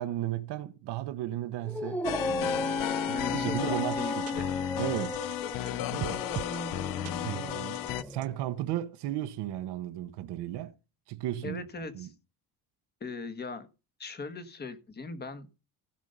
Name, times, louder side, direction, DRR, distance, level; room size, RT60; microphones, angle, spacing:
voice 1, 0.0-4.4 4.8-5.2 5.9-6.2 7.2-10.7 11.1-12.1, right 13 dB, 85° right, 1.0 m, -35 dB
Dog, 1.6-8.3, left 2 dB, 5° left, 0.6 m, -35 dB
sound 1, 2.0-8.0, left 14 dB, 55° left, 0.6 m, -34 dB
voice 2, 3.1-4.5 11.4-12.1 13.0-13.7 14.0-15.6, left 3 dB, 25° left, 1.3 m, -39 dB
sound 2, 3.6-3.7 3.9-4.0 4.3-4.4 5.0-5.7 6.0-6.6 7.0-7.1 7.7-8.3, right 11 dB, 40° right, 0.5 m, -39 dB
15.5 x 5.4 x 5.4 m
cardioid pair, 155°, 40 cm